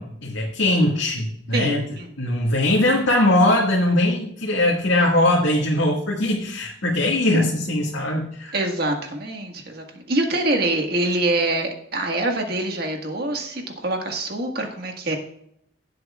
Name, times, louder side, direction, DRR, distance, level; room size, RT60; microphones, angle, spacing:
voice 1, 0.0-1.8 2.2-8.6, left 1 dB, 80° left, -4 dB, 1.9 m, -21 dB
voice 2, 1.5-2.1 8.5-15.2, right 2 dB, 50° right, 2 dB, 1.7 m, -25 dB
16.5 x 7.9 x 2.4 m, 0.71 s
head